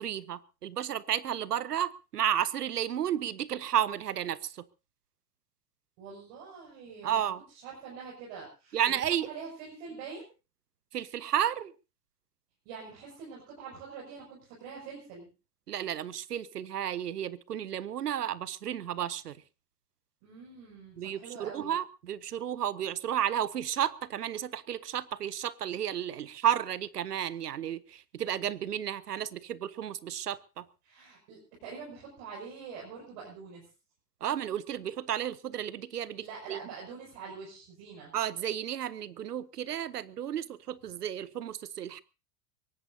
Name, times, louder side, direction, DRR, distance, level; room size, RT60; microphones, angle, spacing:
voice 1, 0.0-4.6 7.0-7.4 8.7-9.3 10.9-11.7 15.7-19.4 21.0-30.6 34.2-36.6 38.1-42.0, right 10 dB, 85° right, 0.8 m, -32 dB
voice 2, 6.0-10.2 12.6-15.3 20.2-21.7 30.8-33.7 36.2-38.1, right 5 dB, 50° right, 6.3 m, -45 dB
23.0 x 17.5 x 2.7 m
hypercardioid pair, 90°, 46 cm